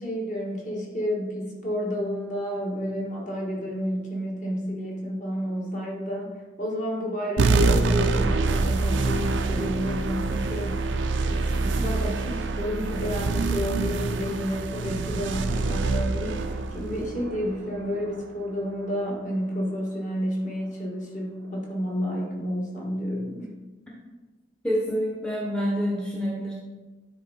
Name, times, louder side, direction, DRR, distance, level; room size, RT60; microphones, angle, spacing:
voice 1, 0.0-10.9 11.2-23.6, equal, 40° left, -3 dB, 1.7 m, -31 dB
sound 1, 7.4-18.2, right 3 dB, 85° right, 0.5 m, -25 dB
voice 2, 24.6-26.5, equal, 5° left, -4 dB, 0.8 m, -27 dB
9.8 x 3.7 x 4.3 m, 1.2 s
head